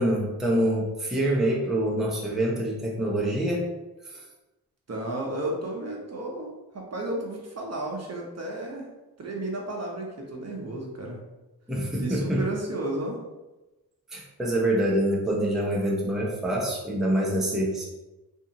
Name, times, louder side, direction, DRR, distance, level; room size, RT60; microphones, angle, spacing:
voice 1, 0.0-3.7 4.1-4.2 11.7-12.4 14.1-17.9, right 1 dB, ahead, -3 dB, 0.7 m, -25 dB
voice 2, 4.9-8.9 9.2-11.2 12.0-13.2, right 1 dB, 35° right, -1 dB, 0.9 m, -33 dB
2.7 x 2.5 x 2.8 m, 1.0 s
supercardioid pair, 45°, 42 cm